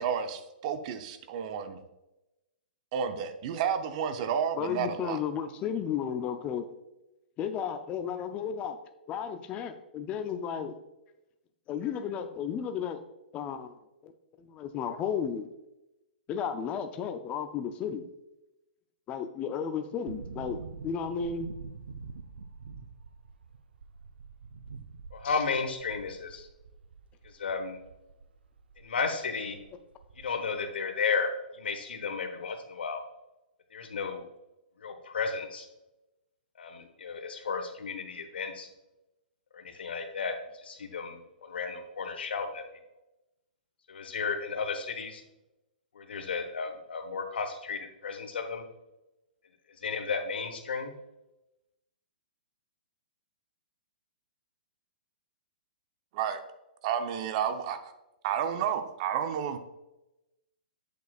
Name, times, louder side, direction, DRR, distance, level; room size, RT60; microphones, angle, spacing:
voice 1, 0.0-1.8 2.9-5.2 56.1-56.4 56.8-57.9 58.2-59.6, right 8 dB, 45° right, 8 dB, 0.7 m, -31 dB
voice 2, 4.6-6.7 7.4-8.8 9.1-10.8 11.7-13.0 13.3-13.8 14.0-14.1 14.4-15.5 16.3-18.0 19.1-21.5 25.2-25.4, left 7 dB, 25° left, 8 dB, 0.4 m, -33 dB
sound 1, 20.1-28.9 29.2-29.3 29.5-30.6 30.8-30.9, right 5 dB, 85° right, 0.5 m, -46 dB
voice 3, 25.1-26.5 27.2-27.8 28.8-29.6 30.1-33.0 33.7-34.2 34.8-35.7 36.6-38.7 39.5-42.6 43.9-45.2 45.9-48.6 49.8-50.9, left 5 dB, 85° left, 6 dB, 1.1 m, -33 dB
8.3 x 6.2 x 2.4 m, 0.95 s
hypercardioid pair, 140°, 5 cm